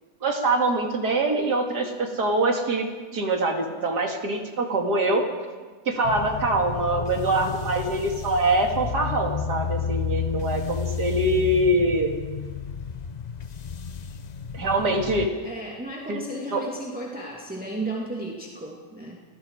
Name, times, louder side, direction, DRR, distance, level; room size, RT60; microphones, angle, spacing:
voice 1, 0.2-2.9 3.1-5.3 5.8-12.1 14.5-15.3 16.1-16.2 16.5-16.6, right 2 dB, 80° right, 2 dB, 3.0 m, -24 dB
sound 1, 6.0-15.3, left 7 dB, 50° left, 0.5 m, -32 dB
voice 2, 15.4-19.2, right 1 dB, 5° right, -2 dB, 2.7 m, -34 dB
28.5 x 20.0 x 4.9 m, 1.4 s
omnidirectional pair, 1.7 m